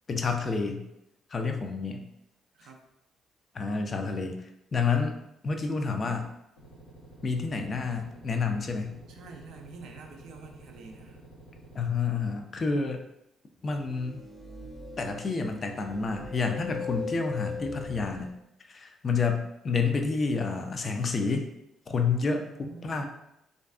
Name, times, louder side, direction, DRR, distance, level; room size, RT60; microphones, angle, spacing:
voice 1, 0.1-0.9 1.3-2.1 3.5-5.2 5.4-6.3 7.2-9.0 11.7-13.0 13.6-14.2 15.0-18.3 18.7-21.5 21.9-23.0, left 4 dB, 40° left, 5 dB, 0.3 m, -29 dB
sound 1, 6.6-11.8, right 1 dB, 90° left, 0.6 m, -51 dB
voice 2, 9.1-11.2 22.1-23.0, right 4 dB, 65° right, 2 dB, 0.3 m, -48 dB
sound 2, 13.6-18.3, left 4 dB, 15° right, 0.6 m, -39 dB
2.4 x 2.2 x 2.3 m, 0.83 s
hypercardioid pair, 45°, 0 cm